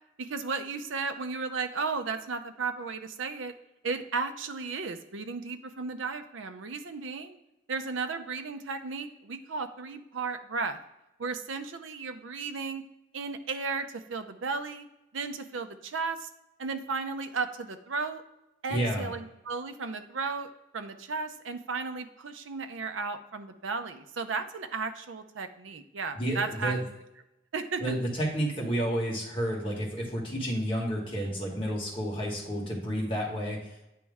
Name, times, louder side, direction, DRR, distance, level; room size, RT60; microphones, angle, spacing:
voice 1, 0.2-3.5 3.8-7.4 7.7-10.8 11.2-12.8 13.1-14.9 15.1-16.3 16.6-18.2 18.6-26.7 27.5-27.9, right 4 dB, 90° right, 9 dB, 0.6 m, -34 dB
voice 2, 18.7-19.1 26.1-26.8 27.8-33.9, equal, 30° left, -3 dB, 1.5 m, -31 dB
9.2 x 3.1 x 3.5 m, 0.92 s
head